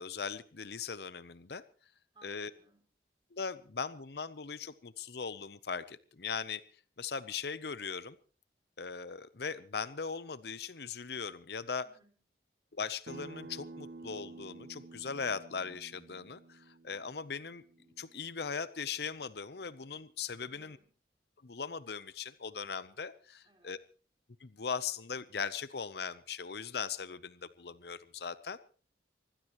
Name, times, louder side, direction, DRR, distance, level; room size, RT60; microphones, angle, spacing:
voice 1, 0.0-1.6 2.2-2.5 3.3-6.6 7.0-8.2 8.8-11.9 12.7-17.6 18.0-20.8 21.4-23.8 24.4-28.6, left 5 dB, 65° left, 15 dB, 0.7 m, -39 dB
voice 2, 2.1-2.8 11.8-12.2 20.4-20.9 23.4-23.8, right 2 dB, 25° right, 3 dB, 4.5 m, -64 dB
Acoustic guitar, 13.1-18.3, right 3 dB, 60° right, 0.8 m, -51 dB
24.5 x 16.5 x 3.1 m, 0.37 s
head